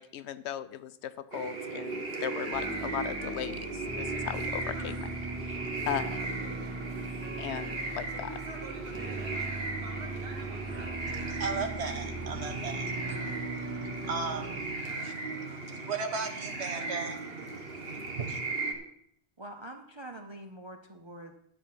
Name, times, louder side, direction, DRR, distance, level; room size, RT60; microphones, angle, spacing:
voice 1, 0.0-5.1 5.9-6.4 7.4-8.4, left 10 dB, 85° left, 14 dB, 0.9 m, -37 dB
sound 1, 1.3-18.7, right 3 dB, 65° right, 1.5 m, -37 dB
sound 2, 2.5-14.6, right 2 dB, 10° right, 1.7 m, -40 dB
voice 2, 11.0-18.4, right 4 dB, 85° right, 6 dB, 1.3 m, -37 dB
voice 3, 19.4-21.4, right 1 dB, 30° right, 3 dB, 0.6 m, -45 dB
9.9 x 7.3 x 5.7 m, 0.70 s
omnidirectional pair, 1.1 m